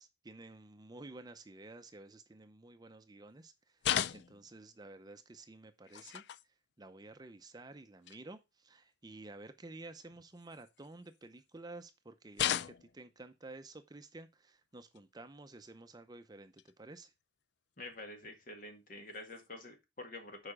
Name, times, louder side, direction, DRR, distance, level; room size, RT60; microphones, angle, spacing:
voice 1, 0.0-3.8 4.1-6.2 6.8-17.1, right 2 dB, 25° right, 0.6 m, -52 dB
sound 1, 3.8-4.5 5.8-6.4 7.4-7.5 8.0-8.2 10.4-11.1 12.3-13.0 14.8-15.0 16.6-16.7 17.9-18.0 19.1-19.5, left 10 dB, 70° left, 0.4 m, -36 dB
voice 2, 17.8-20.5, left 2 dB, 50° left, 1.8 m, -47 dB
6.8 x 4.9 x 4.8 m
head